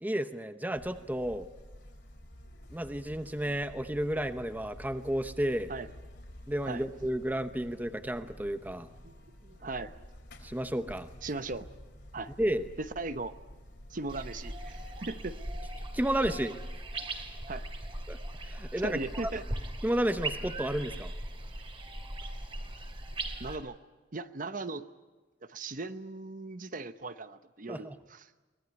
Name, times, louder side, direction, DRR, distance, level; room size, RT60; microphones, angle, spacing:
voice 1, 0.0-1.5 2.7-5.7 6.5-8.9 10.4-11.1 12.4-12.7 15.9-16.6 18.1-19.3 19.8-21.1 27.7-28.0, right 1 dB, 10° right, 10 dB, 0.8 m, -32 dB
Buzz, 0.7-15.7, equal, 65° left, 4.4 m, -50 dB
voice 2, 9.4-9.9 11.2-11.7 12.1-12.3 12.8-13.3 13.9-15.4 17.5-17.6 18.8-19.4 23.4-23.8 24.1-24.9 25.4-28.3, right 3 dB, 45° right, 11 dB, 0.9 m, -38 dB
sound 1, 14.1-23.6, right 1 dB, 30° right, 2.5 m, -39 dB
23.5 x 19.5 x 9.6 m, 1.2 s
head